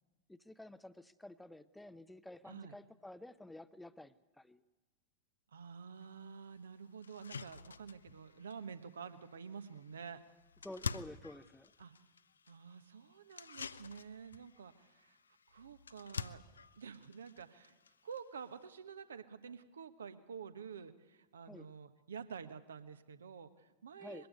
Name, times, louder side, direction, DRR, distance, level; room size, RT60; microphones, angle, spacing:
voice 1, 0.3-4.6 10.6-11.7 21.5-21.7 24.0-24.3, left 1 dB, 5° left, 15 dB, 0.8 m, -51 dB
voice 2, 5.5-10.2 11.8-11.9 12.5-15.2 15.5-16.4 16.8-24.3, right 6 dB, 70° right, 11 dB, 1.3 m, -49 dB
sound 1, 6.0-6.1 6.6-6.7 7.0-18.7, left 5 dB, 70° left, 0.6 m, -49 dB
22.0 x 16.0 x 9.4 m, 1.2 s
figure-of-eight pair, 90°, 0 cm